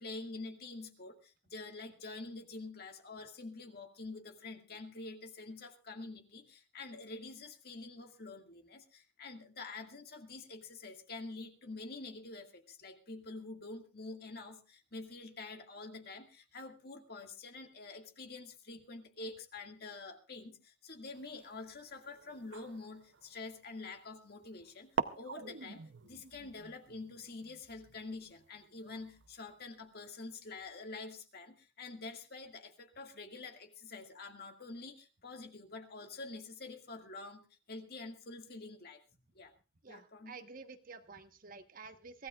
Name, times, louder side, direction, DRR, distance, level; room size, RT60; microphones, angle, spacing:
voice 1, 0.0-37.4 37.7-39.0 39.3-39.5 39.9-40.4, left 3 dB, 60° left, 5 dB, 2.0 m, -47 dB
sound 1, 21.1-24.1 24.6-24.7 25.0-29.5, right 5 dB, 85° right, 0.7 m, -44 dB
voice 2, 39.8-42.3, right 4 dB, 50° right, 8 dB, 1.2 m, -50 dB
23.5 x 16.0 x 2.4 m, 0.30 s
head